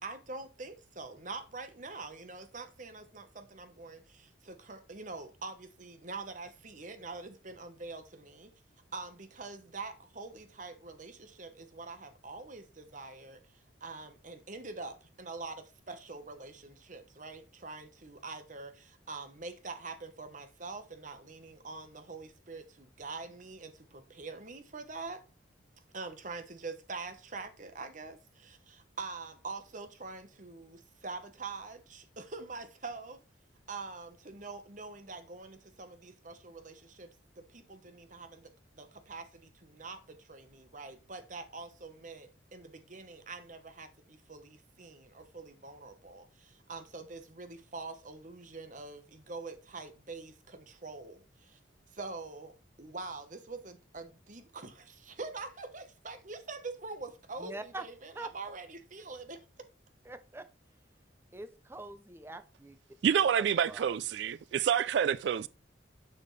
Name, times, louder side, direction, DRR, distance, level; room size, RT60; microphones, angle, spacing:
voice 1, 0.0-8.5 8.9-25.2 25.9-33.2 33.7-51.6 51.9-59.4, right 3 dB, 40° right, 1.1 m, -45 dB
voice 2, 57.4-57.9 58.1-58.3 60.0-60.5 61.3-62.8 63.7-63.9, right 2 dB, 10° right, 0.5 m, -44 dB
voice 3, 63.0-65.5, right 8 dB, 65° right, 0.3 m, -28 dB
7.1 x 6.6 x 3.2 m
head